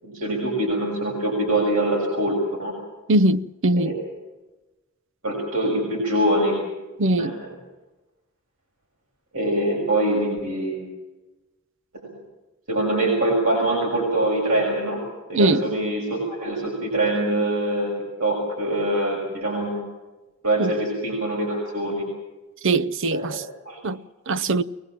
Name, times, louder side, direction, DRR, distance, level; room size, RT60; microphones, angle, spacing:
voice 1, 0.0-2.7 3.8-3.9 5.2-6.6 7.2-7.3 9.3-10.8 11.9-12.1 12.7-15.0 15.3-17.9 18.2-19.8 20.4-22.1 23.1-23.4 23.6-23.8, right 1 dB, 85° right, 6.4 m, -24 dB
voice 2, 3.1-4.0 7.0-7.4 15.3-15.7 20.6-20.7 22.6-23.5 23.8-24.6, right 2 dB, 60° right, 0.6 m, -21 dB
22.5 x 19.5 x 7.5 m
head